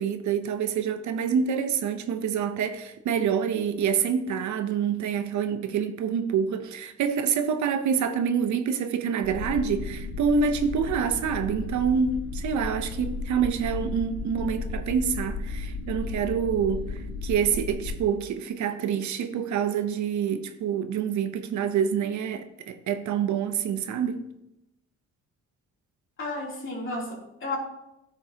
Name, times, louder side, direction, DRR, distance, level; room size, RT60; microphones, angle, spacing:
voice 1, 0.0-24.2, right 7 dB, 70° right, 0.8 m, -27 dB
sound 1, 9.2-18.0, left 3 dB, 80° left, 1.1 m, -34 dB
voice 2, 26.2-27.6, left 2 dB, 40° left, 3.1 m, -32 dB
12.5 x 6.2 x 2.9 m
cardioid pair, 90°, 30 cm